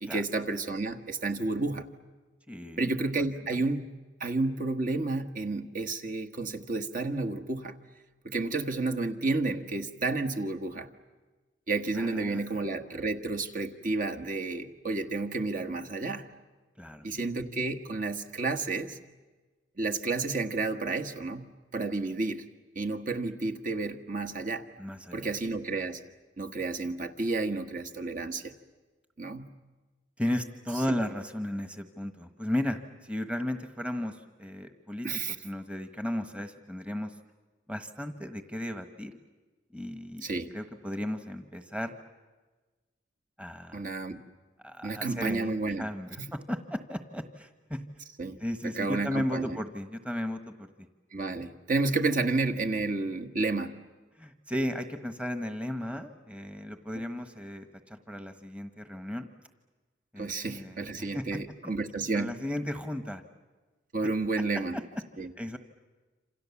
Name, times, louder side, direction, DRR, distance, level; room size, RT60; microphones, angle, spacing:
voice 1, 0.0-1.9 2.8-3.9 4.2-7.8 8.2-10.9 11.7-16.2 17.0-19.0 19.8-21.4 21.7-22.4 22.7-24.6 25.1-26.0 26.4-28.5 29.2-29.5 35.0-35.3 40.2-40.5 43.7-44.2 44.8-45.9 46.2-46.3 48.2-48.4 48.6-49.6 51.1-53.7 60.2-62.3 63.9-64.8 65.2-65.3, right 3 dB, 45° right, 5 dB, 1.5 m, -31 dB
voice 2, 2.5-2.9 3.2-3.6 12.0-12.4 16.8-17.1 24.8-25.3 30.2-37.2 37.7-39.1 39.7-41.9 43.4-43.8 44.6-47.8 48.4-50.9 54.1-59.3 60.1-61.7 62.1-63.2 64.4-64.8 65.2-65.6, left 1 dB, 5° right, 7 dB, 1.2 m, -35 dB
28.0 x 27.0 x 7.1 m, 1.3 s
head